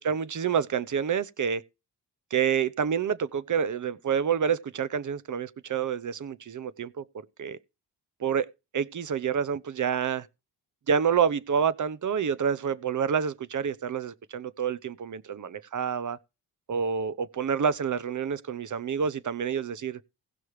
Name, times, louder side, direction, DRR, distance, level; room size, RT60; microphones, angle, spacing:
voice 1, 0.0-1.6 2.3-7.0 7.4-7.6 8.2-8.5 8.7-10.3 10.9-16.2 16.7-20.0, right 7 dB, 45° right, 0.9 m, -28 dB
17.5 x 6.2 x 3.2 m
cardioid pair, 95°, 42 cm